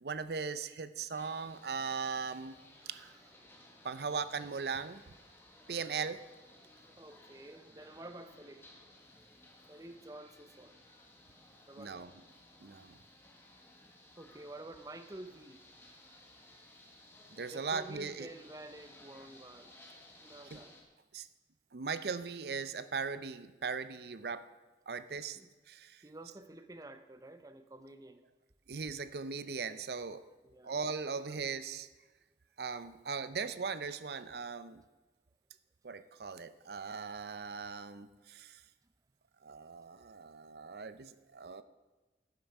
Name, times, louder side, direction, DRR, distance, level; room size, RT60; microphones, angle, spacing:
voice 1, 0.0-2.6 2.9-3.1 3.8-5.0 5.7-6.2 11.8-12.1 12.6-13.0 17.4-18.3 20.5-20.6 21.1-21.3 21.7-24.4 24.9-25.4 25.7-26.0 28.7-30.2 30.6-31.9 32.6-34.8 35.8-38.6 39.4-41.6, right 5 dB, 65° right, 13 dB, 0.6 m, -39 dB
sound 1, 1.1-20.8, left 1 dB, 15° left, 1.5 m, -59 dB
voice 2, 7.0-8.6 9.7-10.8 11.7-12.0 14.2-15.6 17.5-19.8 20.2-20.7 25.3-25.5 26.0-28.2 30.4-30.7 31.1-31.4, right 1 dB, 20° right, 10 dB, 0.6 m, -50 dB
11.5 x 9.3 x 5.4 m, 1.2 s
head